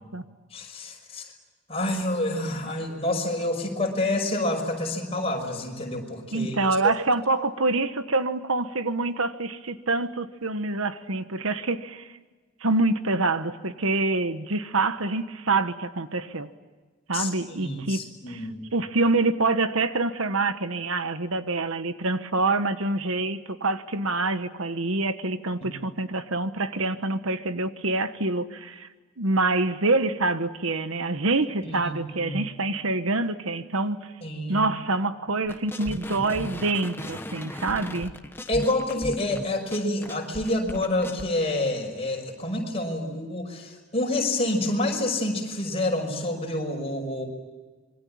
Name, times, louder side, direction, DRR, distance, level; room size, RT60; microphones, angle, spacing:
voice 1, 0.5-1.3 1.7-6.9 17.1-18.6 31.6-31.9 32.2-32.4 34.2-34.7 38.5-47.3, left 1 dB, 25° left, 2 dB, 5.7 m, -28 dB
voice 2, 6.3-12.1 12.6-16.5 17.1-28.9 29.2-34.1 34.5-38.1, right 3 dB, 75° right, 10 dB, 1.3 m, -26 dB
sound 1, 35.5-41.2, left 1 dB, 10° left, 1.1 m, -37 dB
26.0 x 23.5 x 8.7 m, 1.4 s
head